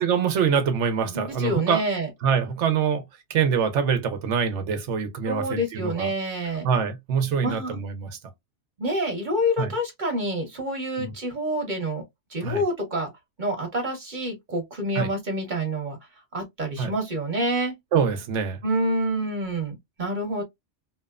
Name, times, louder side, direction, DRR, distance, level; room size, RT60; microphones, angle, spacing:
voice 1, 0.0-1.8 2.2-3.0 3.3-6.1 6.6-8.2 9.6-9.7 11.0-11.1 12.4-12.6 15.0-15.1 16.8-16.9 17.9-18.6, right 6 dB, 80° right, 1.0 m, -24 dB
voice 2, 1.1-2.1 5.2-6.7 7.4-7.8 8.8-12.0 12.3-13.1 13.4-16.0 16.3-17.7 18.6-20.4, right 1 dB, 45° right, 1.0 m, -27 dB
2.8 x 2.1 x 2.3 m
omnidirectional pair, 1.2 m